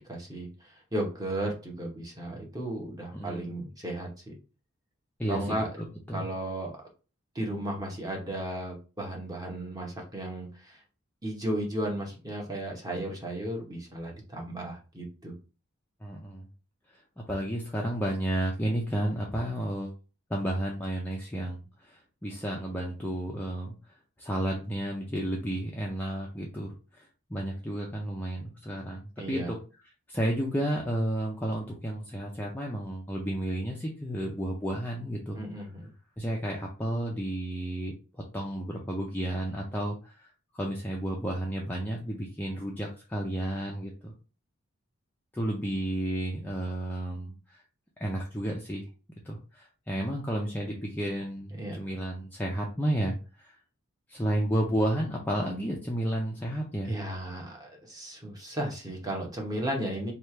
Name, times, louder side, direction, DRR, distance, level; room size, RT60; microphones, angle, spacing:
voice 1, 0.0-4.3 5.3-5.7 6.1-6.7 7.3-10.8 11.2-15.3 29.2-29.5 35.3-35.9 51.6-51.8 56.8-60.1, right 1 dB, 15° right, -1 dB, 1.0 m, -34 dB
voice 2, 3.1-3.4 5.2-5.6 6.1-6.3 16.0-16.5 16.9-17.0 17.3-19.9 20.3-23.7 24.2-29.6 30.1-35.4 36.2-37.9 38.3-40.3 40.5-44.1 45.3-47.6 48.0-48.9 49.2-53.6 54.1-56.9, right 1 dB, 10° left, -2 dB, 0.5 m, -32 dB
3.2 x 2.4 x 4.4 m, 0.34 s
head